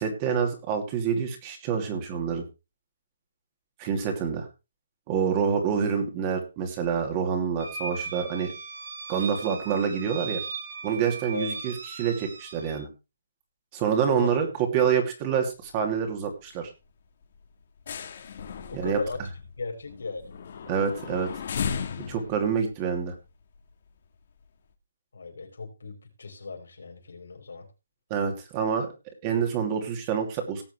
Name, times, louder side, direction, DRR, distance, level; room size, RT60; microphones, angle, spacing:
voice 1, 0.0-2.4 3.8-4.5 5.1-8.5 9.1-10.4 10.8-12.9 13.7-14.5 14.7-16.7 18.7-19.0 20.7-21.3 22.1-23.1 28.1-28.9 29.2-30.6, right 7 dB, 25° right, 4 dB, 2.7 m, -27 dB
sound 1, 7.6-12.8, right 5 dB, 55° right, 2.6 m, -38 dB
voice 2, 11.3-11.6 14.1-14.4 18.7-19.2 19.6-20.3 25.1-27.7, left 4 dB, 85° left, 2 dB, 4.8 m, -36 dB
sound 2, 15.3-15.8 16.1-16.3 16.7-16.8 17.2-23.9 24.4-24.5, left 7 dB, 50° left, 2.0 m, -36 dB
18.5 x 7.4 x 3.3 m, 0.28 s
hypercardioid pair, 160°, 0 cm